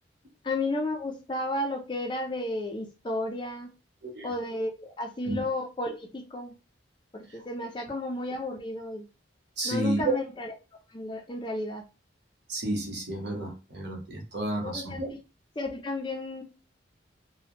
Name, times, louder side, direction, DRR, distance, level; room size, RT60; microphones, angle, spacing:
voice 1, 0.4-3.7 4.2-6.5 7.1-9.0 9.6-10.5 10.9-11.8 14.6-15.2 15.6-16.4, left 2 dB, 25° left, 0.4 m, -33 dB
voice 2, 9.6-10.1 12.5-15.1, right 2 dB, 60° right, 1.0 m, -31 dB
2.9 x 2.0 x 3.1 m
head